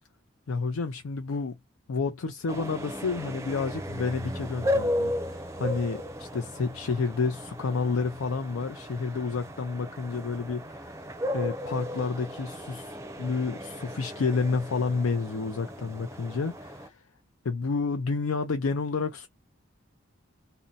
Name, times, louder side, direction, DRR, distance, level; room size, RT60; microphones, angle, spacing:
voice 1, 0.5-1.6 1.9-11.1 11.3-17.0 17.4-19.3, left 4 dB, 90° left, 0.5 m, -30 dB
sound 1, 2.5-16.9, left 1 dB, 15° right, 0.5 m, -35 dB
2.7 x 2.1 x 3.8 m
head